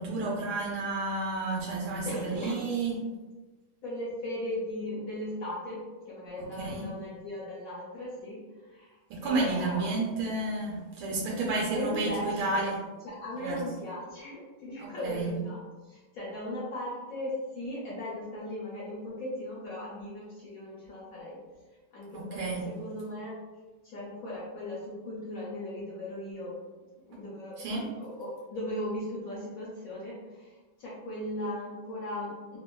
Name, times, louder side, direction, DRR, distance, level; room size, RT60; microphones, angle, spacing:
voice 1, 0.0-3.0 6.4-6.8 9.1-12.8 13.4-13.6 14.8-15.4 22.1-22.7 27.6-27.9, right 3 dB, 85° right, -3 dB, 1.4 m, -31 dB
voice 2, 2.0-2.6 3.8-8.4 8.7-9.0 9.2-10.0 11.7-12.6 13.0-15.6 15.9-21.4 21.9-23.4 23.8-26.5 27.1-32.6, left 1 dB, 70° left, -7 dB, 0.8 m, -38 dB
3.5 x 2.2 x 2.2 m, 1.3 s
omnidirectional pair, 2.2 m